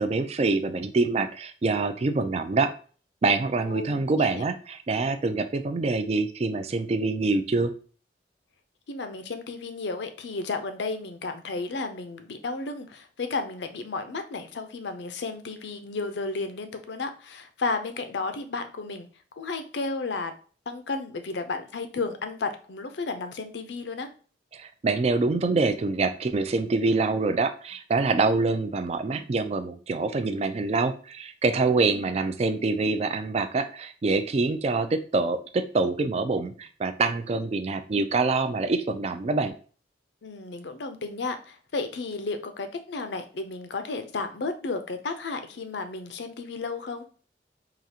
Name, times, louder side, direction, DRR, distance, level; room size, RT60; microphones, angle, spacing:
voice 1, 0.0-2.7 3.2-4.5 4.9-7.7 24.5-39.5, right 3 dB, 35° right, 9 dB, 0.3 m, -25 dB
voice 2, 3.6-4.5 8.9-19.1 19.4-20.3 20.7-24.1 31.9-32.2 40.2-47.1, left 3 dB, 80° left, 8 dB, 0.5 m, -33 dB
4.9 x 2.4 x 2.8 m, 0.40 s
head